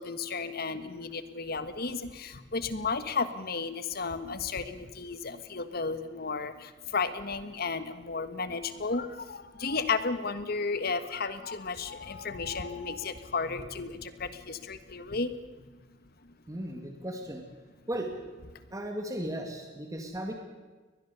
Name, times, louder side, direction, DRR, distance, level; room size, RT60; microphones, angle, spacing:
voice 1, 0.0-15.4 16.2-16.3, left 4 dB, 55° left, 11 dB, 1.4 m, -33 dB
voice 2, 16.5-17.5 17.9-18.1 18.7-20.3, right 1 dB, 20° right, 3 dB, 2.1 m, -36 dB
23.0 x 19.5 x 7.0 m, 1.3 s
head